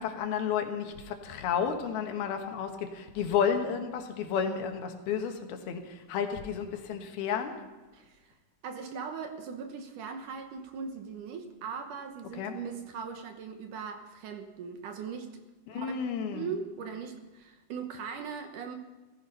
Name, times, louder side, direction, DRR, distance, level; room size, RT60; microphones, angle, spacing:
voice 1, 0.0-7.6 12.4-12.6 15.7-16.5, left 7 dB, 80° left, 5 dB, 3.3 m, -32 dB
voice 2, 7.9-8.3 8.6-15.3 15.7-15.9 16.3-18.8, right 6 dB, 65° right, 6 dB, 2.4 m, -39 dB
16.0 x 15.0 x 5.5 m, 1.2 s
omnidirectional pair, 4.3 m